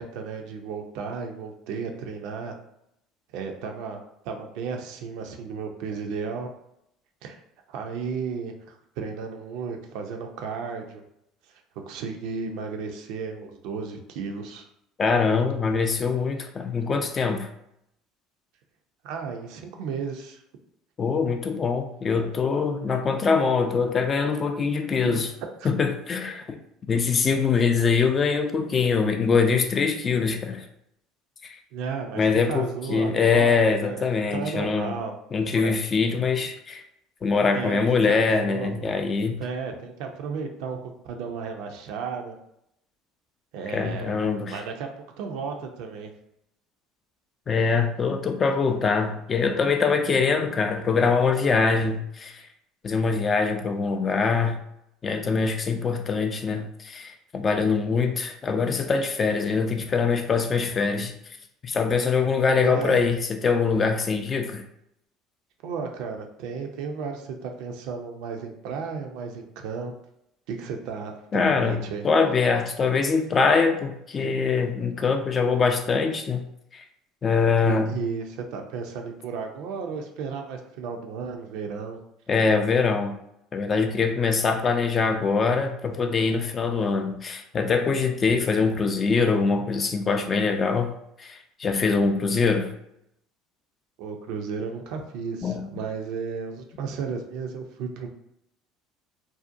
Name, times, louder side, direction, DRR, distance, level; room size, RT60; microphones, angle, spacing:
voice 1, 0.0-2.6 3.3-6.5 7.2-7.4 7.7-11.0 11.9-14.6 19.0-20.4 25.1-25.2 25.6-25.7 31.7-34.0 34.3-35.1 35.5-35.8 37.5-38.7 39.4-42.4 43.5-44.2 44.5-44.9 45.2-46.1 62.6-63.0 65.6-69.9 70.5-72.1 77.6-82.0 94.0-98.1, right 5 dB, 70° right, 3 dB, 0.4 m, -34 dB
voice 2, 15.0-17.5 21.0-25.3 25.6-26.6 26.9-30.6 31.4-31.6 32.2-35.0 35.3-36.8 37.2-39.4 43.7-44.6 47.5-52.4 52.8-54.6 55.0-61.1 61.6-64.6 71.3-76.5 76.7-76.8 77.2-78.0 82.3-83.1 83.5-90.9 91.2-92.7 95.4-95.6, left 5 dB, 35° left, 6 dB, 0.4 m, -23 dB
2.6 x 2.1 x 2.5 m, 0.78 s
hypercardioid pair, 70°, 0 cm